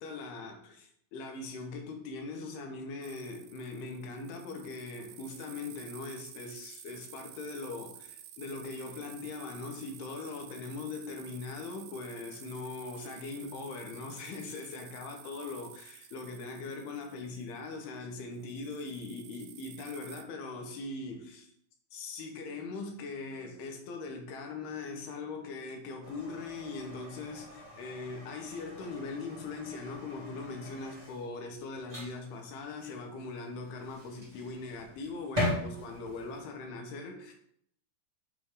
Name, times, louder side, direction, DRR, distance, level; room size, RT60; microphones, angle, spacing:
voice 1, 0.0-21.5 21.9-37.3, left 3 dB, 75° left, 3.0 m, -41 dB
sound 1, 3.0-18.0 18.3-20.2, right 11 dB, 85° right, 2.7 m, -52 dB
sound 2, 26.0-36.4, left 1 dB, 50° right, 0.4 m, -41 dB
8.0 x 3.4 x 4.9 m
omnidirectional pair, 4.7 m